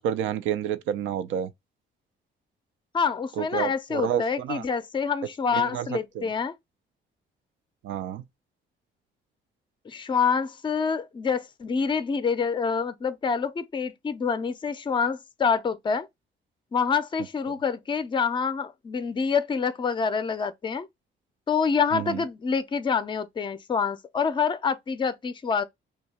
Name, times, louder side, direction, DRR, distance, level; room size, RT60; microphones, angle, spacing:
voice 1, 0.0-1.5 3.4-4.6 5.5-5.9 6.2-6.3 7.8-8.2 21.9-22.2, right 9 dB, 80° right, 0.4 m, -29 dB
voice 2, 2.9-6.5 9.9-16.1 16.7-20.9 21.5-25.6, left 6 dB, 25° left, 0.4 m, -26 dB
2.7 x 2.2 x 4.1 m
cardioid pair, 90°, 20 cm